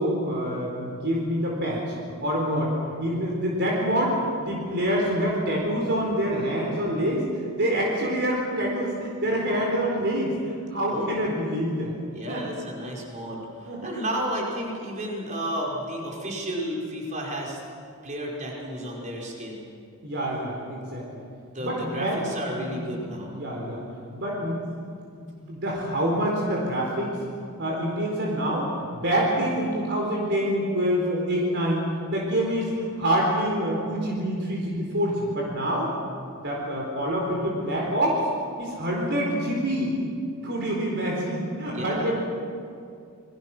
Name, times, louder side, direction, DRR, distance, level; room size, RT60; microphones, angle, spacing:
voice 1, 0.0-1.9 2.2-2.7 3.0-7.3 7.5-11.9 12.3-12.4 13.7-14.0 20.0-21.2 21.6-22.8 23.2-23.8 24.1-24.8 25.2-27.2 27.6-31.8 32.1-32.7 33.0-35.9 36.4-38.3 38.6-39.9 40.4-42.1, equal, 55° right, -2 dB, 4.3 m, -26 dB
voice 2, 10.9-11.3 12.1-17.6 18.0-19.6 21.5-23.3 41.7-42.1, equal, 35° right, -2 dB, 5.2 m, -32 dB
29.0 x 22.0 x 6.1 m, 2.4 s
head